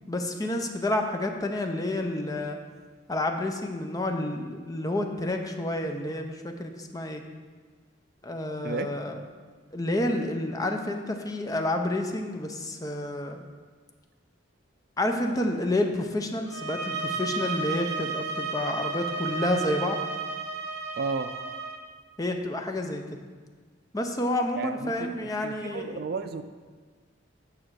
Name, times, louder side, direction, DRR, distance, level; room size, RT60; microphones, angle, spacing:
voice 1, 0.1-2.6 3.1-7.2 8.2-9.2 9.7-13.4 15.0-20.0 22.2-23.2 23.9-26.0, left 1 dB, 20° left, 4 dB, 0.6 m, -29 dB
sound 1, 16.5-21.8, right 4 dB, 90° right, 0.8 m, -33 dB
voice 2, 21.0-21.3 24.6-25.1 25.4-26.4, right 4 dB, 55° right, 10 dB, 0.4 m, -32 dB
8.8 x 6.2 x 4.7 m, 1.5 s
head